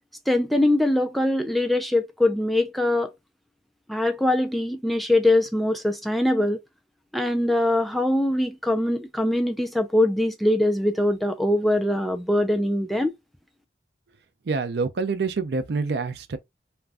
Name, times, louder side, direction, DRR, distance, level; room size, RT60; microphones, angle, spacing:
voice 1, 0.3-3.1 3.9-6.6 7.1-13.1, left 1 dB, ahead, 0.3 m, -22 dB
voice 2, 14.5-16.4, right 4 dB, 65° right, 0.4 m, -26 dB
2.5 x 2.2 x 3.3 m
head